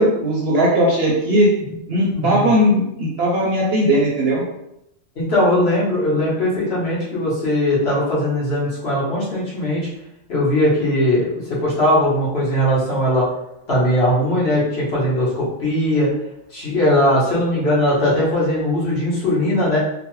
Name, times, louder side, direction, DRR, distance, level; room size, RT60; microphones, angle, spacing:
voice 1, 0.0-1.5 1.9-4.4, equal, 60° right, -3 dB, 0.7 m, -18 dB
voice 2, 2.1-2.5 5.2-9.9 10.3-11.3 11.6-13.2 13.7-16.1 16.5-19.8, left 1 dB, 55° left, -7 dB, 1.2 m, -19 dB
3.0 x 2.0 x 3.0 m, 0.83 s
omnidirectional pair, 1.3 m